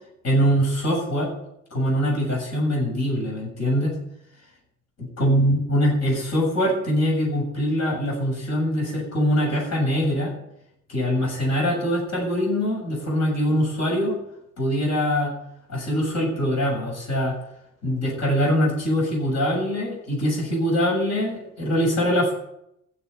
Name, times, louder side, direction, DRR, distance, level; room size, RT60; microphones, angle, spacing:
voice 1, 0.2-1.3 1.7-4.0 5.2-10.3 10.9-14.2 14.6-15.4 15.7-17.4 17.8-22.3, equal, 40° left, -2 dB, 7.4 m, -23 dB
15.0 x 6.7 x 9.6 m, 0.79 s
figure-of-eight pair, 50°, 41 cm